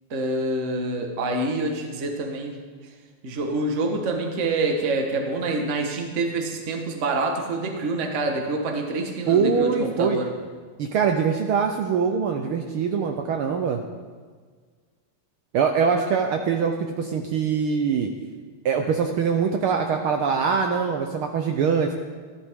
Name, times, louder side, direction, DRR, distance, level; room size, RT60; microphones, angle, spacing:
voice 1, 0.1-2.6 3.2-10.3, right 2 dB, 50° right, 3 dB, 0.8 m, -26 dB
voice 2, 9.3-10.2 10.8-13.8 15.5-18.1 18.6-21.9, right 6 dB, 90° right, 4 dB, 1.2 m, -23 dB
14.5 x 13.0 x 3.6 m, 1.5 s
omnidirectional pair, 3.4 m